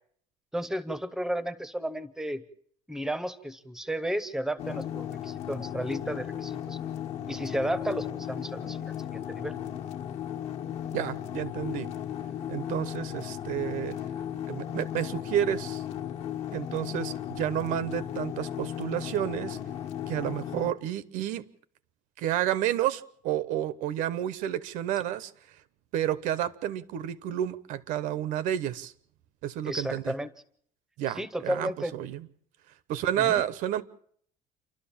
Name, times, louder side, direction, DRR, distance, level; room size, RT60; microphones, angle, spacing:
voice 1, 0.5-2.4 2.9-6.8 7.3-9.5 29.6-30.3 31.2-31.9 33.2-33.4, right 1 dB, 5° right, 0.8 m, -33 dB
sound 1, 4.6-20.7, left 10 dB, 50° left, 1.4 m, -36 dB
voice 2, 10.9-11.9 12.5-14.0 14.5-15.8 16.5-19.6 20.1-21.5 22.2-25.6 25.9-28.9 29.4-30.1 31.0-32.3 32.9-33.8, right 11 dB, 75° right, 1.0 m, -30 dB
29.0 x 12.5 x 7.4 m
cardioid pair, 180°, 13 cm